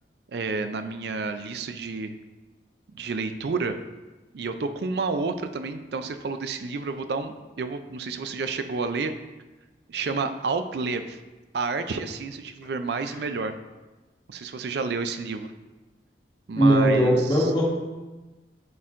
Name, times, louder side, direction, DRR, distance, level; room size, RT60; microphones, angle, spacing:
voice 1, 0.3-2.1 2.9-3.8 4.3-9.1 9.9-11.2 11.5-13.5 14.3-15.5 16.5-17.5, right 4 dB, 70° right, 9 dB, 0.4 m, -30 dB
voice 2, 16.5-17.7, right 1 dB, 25° left, -4 dB, 1.4 m, -19 dB
10.5 x 4.3 x 2.5 m, 1.2 s
head